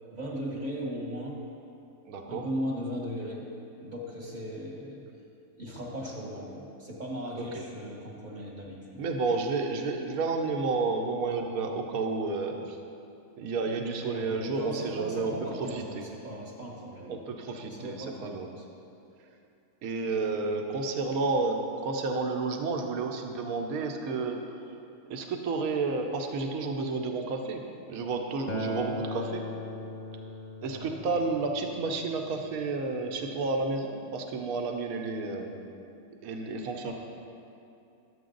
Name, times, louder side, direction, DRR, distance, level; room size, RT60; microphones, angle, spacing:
voice 1, 0.1-1.5 2.3-3.5 3.8-5.1 5.6-9.0 14.0-17.2 17.6-18.7 30.7-31.0 36.8-36.9, equal, 30° right, -3 dB, 1.3 m, -37 dB
voice 2, 2.1-2.4 7.3-7.6 9.0-12.8 13.4-15.3 15.6-16.0 17.0-18.5 19.8-24.4 25.1-27.6 27.9-29.4 30.6-35.6 36.0-36.9, right 3 dB, 65° right, 3 dB, 1.2 m, -31 dB
Acoustic guitar, 28.5-33.7, left 1 dB, 50° left, 0.6 m, -39 dB
11.0 x 7.8 x 3.9 m, 2.6 s
omnidirectional pair, 1.7 m